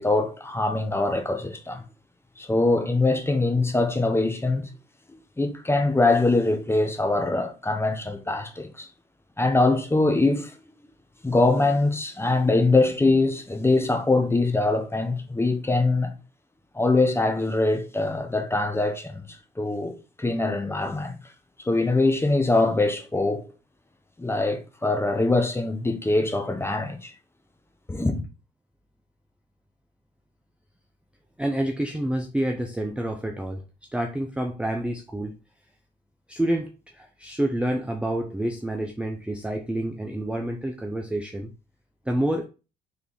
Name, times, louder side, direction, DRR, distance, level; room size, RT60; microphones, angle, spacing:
voice 1, 0.0-1.8 2.4-4.7 5.4-8.9 9.4-10.5 11.2-16.2 16.7-19.2 19.6-21.2 21.6-23.5 24.2-27.1 27.9-28.2, left 2 dB, 10° left, 0.9 m, -23 dB
voice 2, 31.4-33.6 33.9-35.4 36.3-41.5 42.1-42.4, right 1 dB, 5° right, 0.6 m, -28 dB
3.3 x 3.2 x 3.9 m
supercardioid pair, 70°, 21 cm